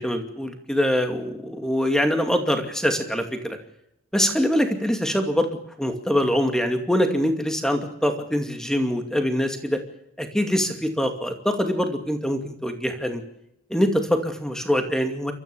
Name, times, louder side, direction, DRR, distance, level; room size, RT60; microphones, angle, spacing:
voice 1, 0.0-3.6 4.1-5.5 5.8-9.8 10.2-13.2 13.7-15.3, equal, 5° left, 5 dB, 2.4 m, -24 dB
29.0 x 14.0 x 7.0 m, 0.80 s
head